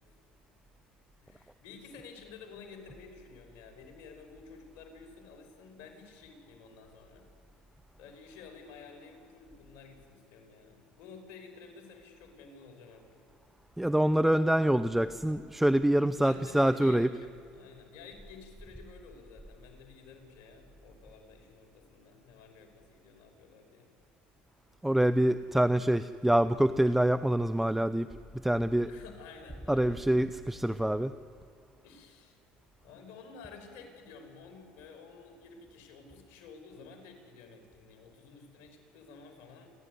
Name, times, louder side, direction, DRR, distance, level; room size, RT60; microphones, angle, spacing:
voice 1, 1.2-7.3 8.0-13.2 16.2-23.9 28.8-30.1 31.8-32.4 32.8-39.7, left 5 dB, 75° left, 4 dB, 5.7 m, -51 dB
voice 2, 13.8-17.1 24.8-28.1 28.4-28.9 29.7-31.1, right 1 dB, 5° right, 12 dB, 0.7 m, -25 dB
28.5 x 13.5 x 9.7 m, 2.5 s
supercardioid pair, 80°, 4 cm